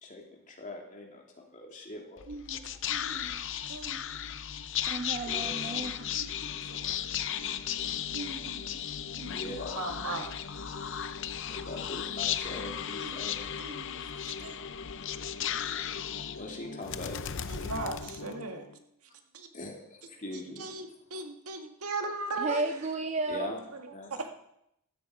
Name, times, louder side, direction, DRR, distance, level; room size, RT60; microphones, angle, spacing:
voice 1, 0.0-2.8 3.3-3.4 5.2-6.1 6.4-7.0 8.4-8.9 9.3-9.8 11.5-13.7 16.4-17.2 19.5-20.7 22.5-22.6 23.3-23.6 23.9-24.1, left 2 dB, 35° left, 1 dB, 2.8 m, -43 dB
Whispering, 2.2-18.8, left 9 dB, 55° left, 0.7 m, -35 dB
voice 2, 2.3-4.0 6.2-6.3 6.6-6.8 8.1-8.6 9.1-9.5 9.8-10.3 13.0-13.2 13.6-14.6 17.5-18.7 19.3-19.5 20.3-22.6 23.7-23.8 24.1-24.3, right 3 dB, 85° right, 4 dB, 1.9 m, -39 dB
voice 3, 4.9-6.1 22.4-23.5, right 2 dB, 30° right, 7 dB, 0.6 m, -33 dB
15.0 x 13.0 x 5.0 m, 0.79 s
head